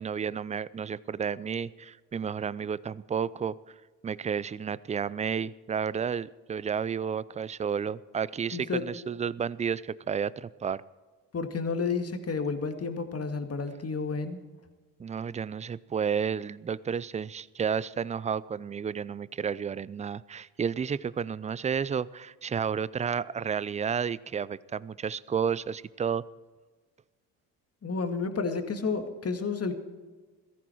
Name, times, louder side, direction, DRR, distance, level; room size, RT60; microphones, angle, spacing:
voice 1, 0.0-3.5 4.0-10.8 15.0-26.2, right 7 dB, 15° right, 20 dB, 0.4 m, -31 dB
voice 2, 8.5-8.9 11.3-14.4 27.8-29.7, left 4 dB, 30° left, 7 dB, 2.1 m, -31 dB
17.0 x 14.0 x 4.6 m, 1.4 s
hypercardioid pair, 60°, 45 cm